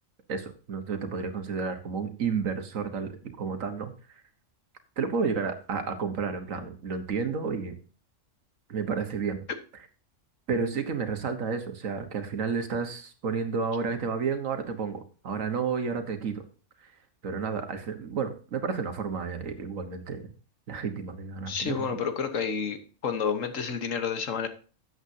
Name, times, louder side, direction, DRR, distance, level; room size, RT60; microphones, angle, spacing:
voice 1, 0.3-4.2 5.0-7.7 8.7-9.4 10.5-16.4 16.8-16.9 17.2-20.3 20.7-21.9, right 5 dB, 80° right, 8 dB, 1.7 m, -31 dB
voice 2, 21.5-22.8 23.0-24.5, left 6 dB, 80° left, 8 dB, 1.6 m, -29 dB
12.5 x 8.0 x 2.8 m, 0.38 s
omnidirectional pair, 1.3 m